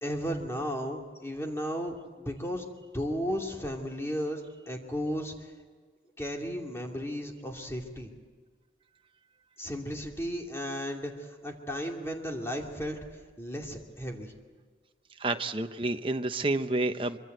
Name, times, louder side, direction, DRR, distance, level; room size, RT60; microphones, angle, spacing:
voice 1, 0.0-2.7 2.9-5.5 6.2-8.1 9.6-13.0 13.4-14.3, equal, 15° left, 1 dB, 2.6 m, -34 dB
voice 2, 15.2-17.2, right 2 dB, 30° right, 7 dB, 1.0 m, -29 dB
25.0 x 24.5 x 8.0 m, 1.5 s
head